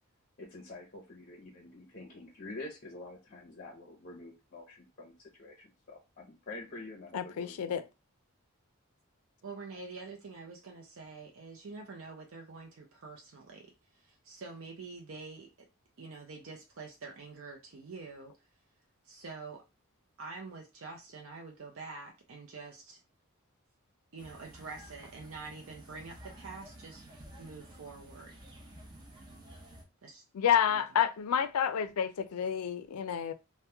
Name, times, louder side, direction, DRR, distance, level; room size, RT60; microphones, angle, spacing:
voice 1, 0.4-7.8, left 2 dB, 40° left, 0.6 m, -47 dB
voice 2, 7.1-7.8 30.3-33.3, left 8 dB, 85° left, 0.4 m, -29 dB
voice 3, 9.4-15.7 16.0-18.3 19.0-19.6 20.2-23.0 24.1-27.1 27.4-28.4 30.0-30.2 30.7-30.8, right 4 dB, 65° right, 0.5 m, -46 dB
sound 1, 24.2-29.8, right 1 dB, 20° right, 0.6 m, -52 dB
2.9 x 2.1 x 3.3 m
head